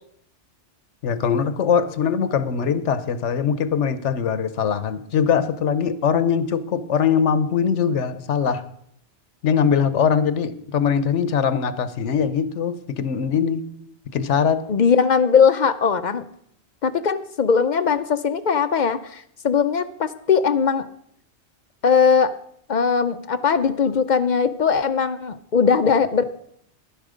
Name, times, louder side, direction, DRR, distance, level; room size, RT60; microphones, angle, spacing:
voice 1, 1.0-8.6 9.4-13.6 14.1-14.7, left 7 dB, 80° left, 14 dB, 1.1 m, -21 dB
voice 2, 14.7-16.3 16.8-20.9 21.8-22.3 22.7-26.2, left 6 dB, 50° left, 12 dB, 0.6 m, -19 dB
11.5 x 10.5 x 5.0 m, 0.70 s
omnidirectional pair, 1.2 m